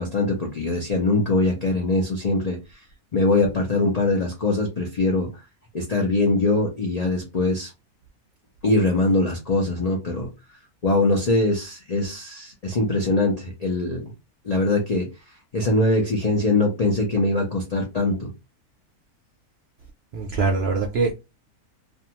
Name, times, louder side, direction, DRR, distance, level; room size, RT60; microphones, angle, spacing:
voice 1, 0.0-2.6 3.1-5.3 5.7-7.7 8.6-10.3 10.8-14.1 14.4-15.1 15.5-18.3, left 2 dB, 70° left, 0.3 m, -22 dB
voice 2, 20.1-21.1, right 4 dB, 70° right, 0.6 m, -23 dB
2.5 x 2.3 x 2.8 m
omnidirectional pair, 1.6 m